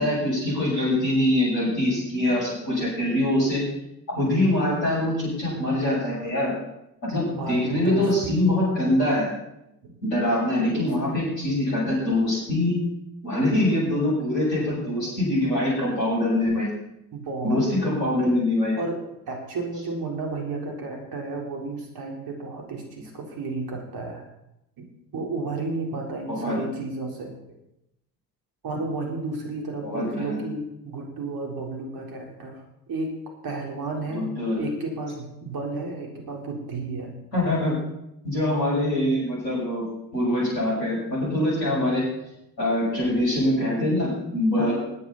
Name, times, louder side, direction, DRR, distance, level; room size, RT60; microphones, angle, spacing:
voice 1, 0.0-3.6 4.1-6.5 7.0-9.3 10.0-12.8 13.2-16.7 17.4-18.8 26.3-26.6 29.8-30.4 34.1-34.6 37.3-37.8 38.2-39.8 40.1-42.0 42.6-44.7, left 1 dB, 85° left, -7 dB, 6.9 m, -24 dB
voice 2, 7.4-8.4 9.8-10.0 10.7-11.2 17.1-17.6 18.8-24.2 24.8-24.9 25.1-27.3 28.6-32.6 32.9-33.1 33.4-37.1 44.6-44.7, right 3 dB, 45° right, 1 dB, 4.3 m, -32 dB
20.5 x 9.5 x 4.2 m, 0.84 s
figure-of-eight pair, 55°, 49 cm